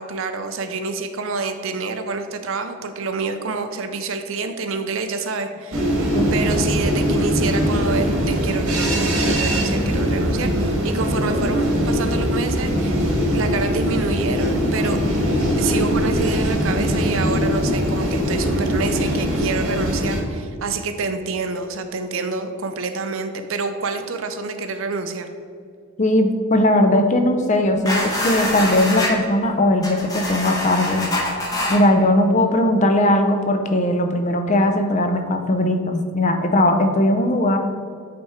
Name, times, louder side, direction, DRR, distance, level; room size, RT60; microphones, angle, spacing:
voice 1, 0.0-6.0 6.3-13.0 13.3-15.0 15.6-25.3, right 4 dB, 65° right, 8 dB, 0.5 m, -27 dB
sound 1, 5.7-20.2, equal, 85° right, 1.4 m, -21 dB
voice 2, 26.0-31.1 31.7-37.6, left 1 dB, 35° left, 5 dB, 0.5 m, -19 dB
sound 2, 27.8-29.1 29.8-31.8, left 1 dB, 15° left, 1.0 m, -24 dB
8.6 x 3.5 x 4.3 m, 2.3 s
head